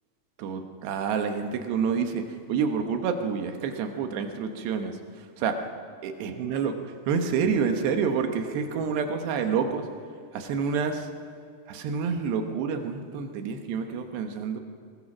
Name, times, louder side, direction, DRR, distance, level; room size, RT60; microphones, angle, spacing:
voice 1, 0.4-5.6 6.0-9.9 10.3-11.1 11.7-14.6, right 6 dB, 85° right, 5 dB, 3.4 m, -28 dB
23.0 x 20.5 x 6.1 m, 2.5 s
omnidirectional pair, 4.8 m